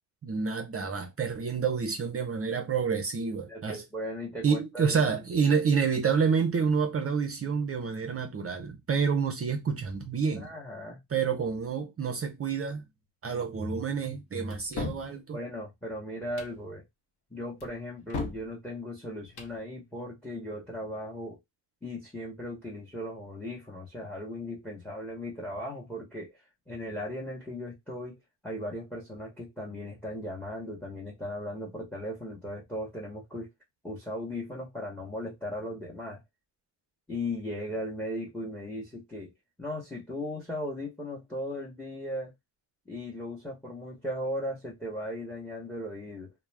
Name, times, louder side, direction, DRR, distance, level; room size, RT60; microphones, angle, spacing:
voice 1, 0.2-3.8 4.4-10.5 11.1-12.8 13.2-15.4, right 6 dB, 30° right, 0.5 m, -28 dB
voice 2, 3.2-5.5 10.4-11.0 15.3-16.8 17.3-21.4 21.8-26.4 26.7-33.5 33.8-36.2 37.1-39.3 39.6-42.3 42.9-46.3, left 1 dB, 5° left, 0.8 m, -37 dB
sound 1, 14.5-15.1 16.2-16.6 17.6-18.5 19.2-19.6, left 4 dB, 55° left, 0.8 m, -36 dB
2.3 x 2.1 x 3.1 m
cardioid pair, 95°, 48 cm